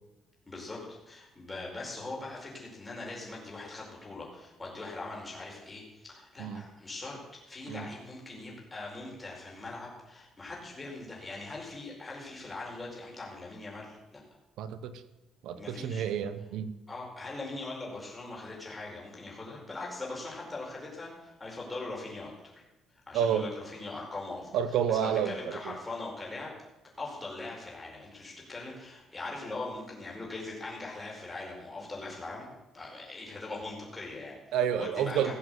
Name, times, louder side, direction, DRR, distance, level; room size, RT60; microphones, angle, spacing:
voice 1, 0.5-7.2 7.4-14.2 15.6-16.0 16.9-22.5 23.1-26.5 27.0-35.3, left 2 dB, 15° left, -3 dB, 4.8 m, -41 dB
voice 2, 14.6-15.0 15.4-16.7 23.1-23.5 24.5-25.7 34.5-35.3, right 9 dB, 85° right, 12 dB, 1.1 m, -30 dB
17.0 x 7.7 x 8.1 m, 1.0 s
cardioid pair, 145°, 0 cm